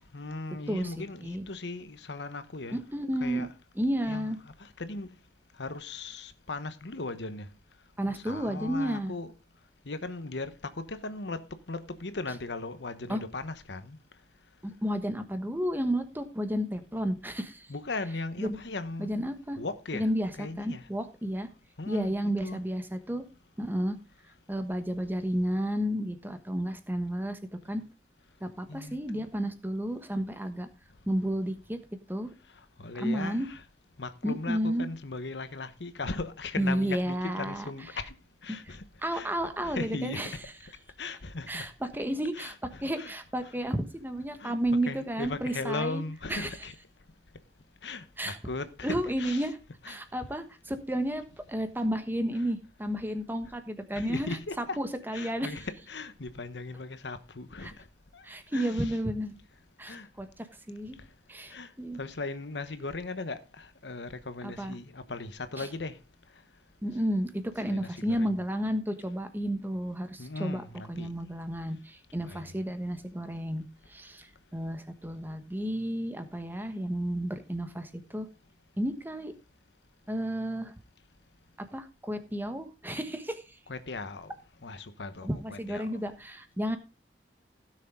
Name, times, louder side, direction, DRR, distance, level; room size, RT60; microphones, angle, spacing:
voice 1, 0.1-2.8 3.2-3.5 4.1-5.1 5.6-7.5 8.1-9.3 9.8-14.0 17.7-20.1 20.4-20.9 21.8-22.6 28.7-29.3 32.8-33.6 34.0-38.1 38.4-38.8 39.1-40.4 41.0-41.7 42.3-43.1 43.4-43.5 44.4-44.5 44.9-46.8 47.8-49.5 49.8-50.0 53.9-54.8 55.1-57.8 58.1-58.2 58.5-59.0 59.9-60.1 61.5-66.0 67.7-68.4 70.2-71.1 72.2-72.4 83.7-84.3 84.6-86.0, left 3 dB, 80° left, 1.1 m, -38 dB
voice 2, 0.7-1.4 2.7-3.5 3.7-4.4 8.0-9.1 13.1-13.2 14.6-17.7 18.4-18.6 19.0-19.6 19.9-21.5 21.9-23.3 23.6-24.0 24.5-27.4 27.6-27.8 28.4-30.7 31.1-31.8 32.1-32.3 33.0-33.5 34.2-34.9 36.6-37.7 38.5-38.8 39.0-40.3 41.5-42.5 42.8-46.0 46.3-46.5 48.2-48.4 48.8-49.6 49.9-54.4 54.8-55.6 57.6-57.7 58.2-59.4 59.8-61.0 61.3-62.0 64.4-64.7 65.6-65.7 66.8-70.6 70.9-73.6 73.9-78.3 78.8-79.3 80.1-80.7 81.6-83.6 85.2-86.8, equal, 10° right, 1.2 m, -32 dB
16.5 x 6.5 x 3.7 m
head